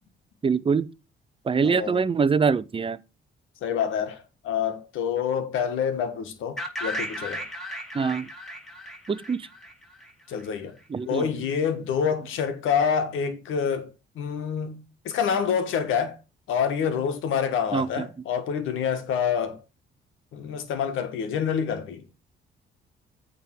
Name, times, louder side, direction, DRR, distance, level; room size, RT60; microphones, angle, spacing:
voice 1, 0.4-0.9 1.4-3.0 7.9-8.3 9.1-9.5 10.9-11.3 17.7-18.1, right 5 dB, 25° right, 0.6 m, -24 dB
voice 2, 1.6-2.0 3.6-7.4 10.3-10.7 11.0-13.9 14.1-16.2 16.5-19.6 20.3-22.1, left 7 dB, 85° left, 1.6 m, -27 dB
sound 1, 6.6-10.4, equal, ahead, 2.5 m, -35 dB
9.1 x 3.7 x 6.6 m
cardioid pair, 90°, 20 cm